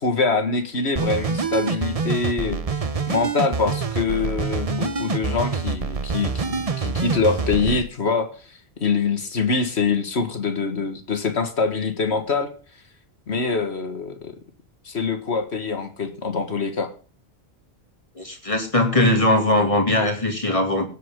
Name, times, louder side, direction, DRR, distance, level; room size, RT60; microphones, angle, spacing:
voice 1, 0.0-2.8 3.1-8.3 8.8-12.5 13.3-14.3 14.9-16.9, left 4 dB, 75° left, 7 dB, 2.0 m, -24 dB
sound 1, 0.9-7.8, right 4 dB, 35° right, 0.9 m, -26 dB
voice 2, 18.2-20.9, left 1 dB, 30° left, 4 dB, 2.6 m, -20 dB
18.0 x 8.3 x 3.8 m, 0.39 s
omnidirectional pair, 1.1 m